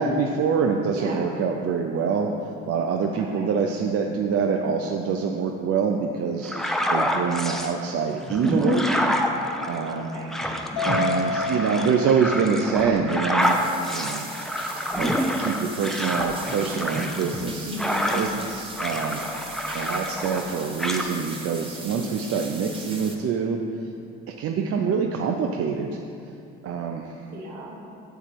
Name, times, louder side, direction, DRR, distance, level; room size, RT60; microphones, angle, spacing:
voice 1, 0.0-2.3 2.7-9.0 9.7-10.1 10.8-14.3 15.0-17.7 18.1-19.2 19.7-23.6 24.4-26.0 26.6-27.1, right 6 dB, 50° right, 3 dB, 0.6 m, -25 dB
voice 2, 0.9-1.3 3.2-3.5 6.9-7.0 9.8-10.7 17.6-18.1 27.3-27.7, right 1 dB, 65° right, -1 dB, 1.5 m, -36 dB
sound 1, 6.5-7.7 8.2-18.5 18.8-20.5 20.8-21.1, equal, ahead, 0.7 m, -27 dB
Mallet percussion, 10.8-13.2, left 4 dB, 75° left, 0.6 m, -30 dB
sound 2, 13.4-23.2, right 2 dB, 15° right, 1.2 m, -40 dB
8.2 x 7.4 x 3.0 m, 2.6 s
hypercardioid pair, 60°, 30 cm